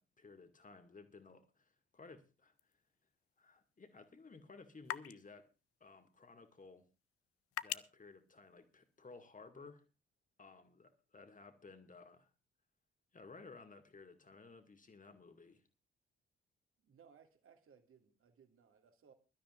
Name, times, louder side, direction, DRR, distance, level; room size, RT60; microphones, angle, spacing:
voice 1, 0.0-2.5 3.4-5.5 5.8-6.8 7.6-9.8 10.4-12.3 13.1-15.6, left 4 dB, 25° left, 8 dB, 2.0 m, -57 dB
sound 1, 2.5-9.3, left 14 dB, 50° left, 0.6 m, -50 dB
voice 2, 16.8-19.1, right 7 dB, 45° right, 7 dB, 2.1 m, -65 dB
24.0 x 12.5 x 2.5 m, 0.29 s
figure-of-eight pair, 40°, 30 cm